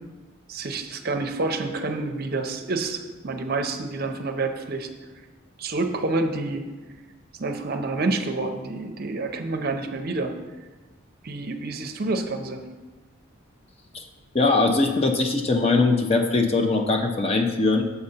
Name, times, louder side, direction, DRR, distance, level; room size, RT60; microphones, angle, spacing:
voice 1, 0.5-4.9 5.6-6.6 7.4-10.3 11.2-12.6, right 3 dB, 45° right, 6 dB, 0.6 m, -28 dB
voice 2, 14.3-17.8, left 3 dB, 30° left, 4 dB, 0.6 m, -21 dB
7.0 x 4.2 x 6.5 m, 1.2 s
head